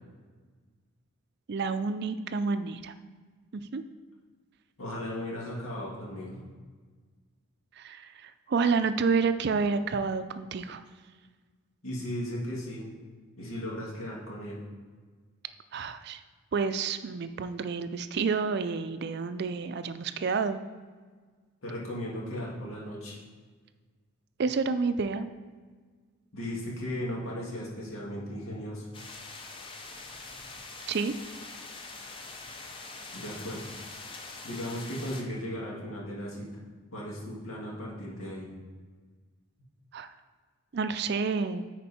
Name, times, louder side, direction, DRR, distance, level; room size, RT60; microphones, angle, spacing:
voice 1, 1.5-2.9 3.7-3.8 7.8-10.8 15.7-16.2 16.5-20.6 24.4-25.3 30.9-31.1 39.9-40.1 40.7-41.6, right 5 dB, 50° right, 11 dB, 0.4 m, -29 dB
voice 2, 4.8-6.5 11.8-12.9 13.4-14.6 21.6-23.2 26.3-28.9 33.1-33.7 34.4-36.5 36.9-38.5, left 1 dB, 75° left, -4 dB, 2.2 m, -36 dB
sound 1, 28.9-35.2, left 3 dB, 25° left, 0.7 m, -44 dB
9.6 x 4.5 x 4.3 m, 1.5 s
head